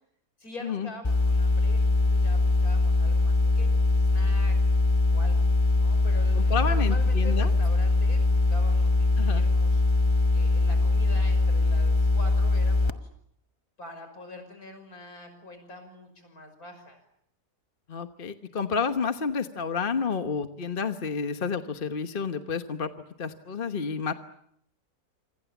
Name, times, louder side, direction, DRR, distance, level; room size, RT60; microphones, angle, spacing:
voice 1, 0.4-4.7 5.1-5.4 5.8-9.8 10.3-13.1 13.8-17.0, left 1 dB, 70° left, 7 dB, 6.4 m, -45 dB
sound 1, 1.0-12.9, left 2 dB, 20° left, 0.9 m, -22 dB
voice 2, 6.3-7.5 9.2-9.4 17.9-22.9 23.2-24.1, left 5 dB, 40° left, 8 dB, 1.3 m, -30 dB
28.0 x 26.0 x 7.2 m, 0.71 s
omnidirectional pair, 1.6 m